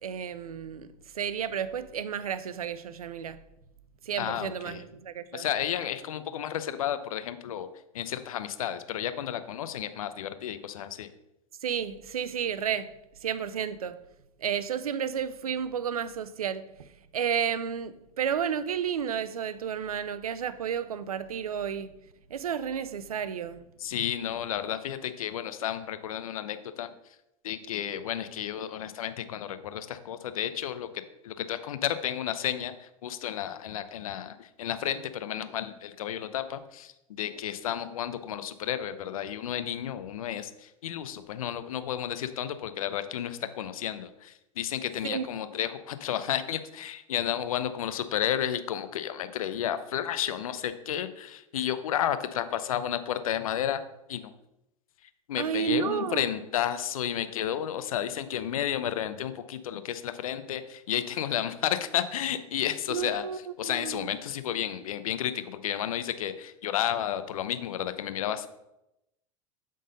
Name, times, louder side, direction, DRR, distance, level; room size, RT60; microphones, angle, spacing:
voice 1, 0.0-3.4 4.0-5.4 11.6-12.9 13.2-14.0 14.4-16.7 17.1-22.0 22.3-23.6 45.0-45.3 55.4-56.3 62.9-63.4 63.6-64.1, right 8 dB, 85° right, 0.5 m, -32 dB
voice 2, 4.2-4.8 5.3-7.7 7.9-11.1 23.8-26.9 27.4-30.9 31.2-53.8 54.1-54.3 55.0-63.2 63.6-68.5, left 10 dB, 75° left, 0.7 m, -32 dB
7.6 x 3.9 x 5.2 m
hypercardioid pair, 90°, 18 cm